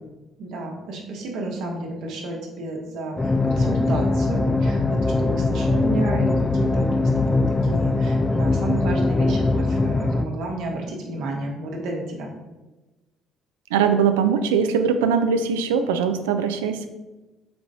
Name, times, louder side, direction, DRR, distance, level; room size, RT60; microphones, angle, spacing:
voice 1, 0.4-12.3, right 2 dB, 70° right, 0 dB, 1.0 m, -31 dB
sound 1, 3.2-10.3, left 2 dB, 20° left, 0.3 m, -21 dB
voice 2, 13.7-16.9, right 6 dB, 90° right, 8 dB, 0.3 m, -21 dB
4.4 x 3.9 x 2.7 m, 1.1 s
hypercardioid pair, 60°, 0 cm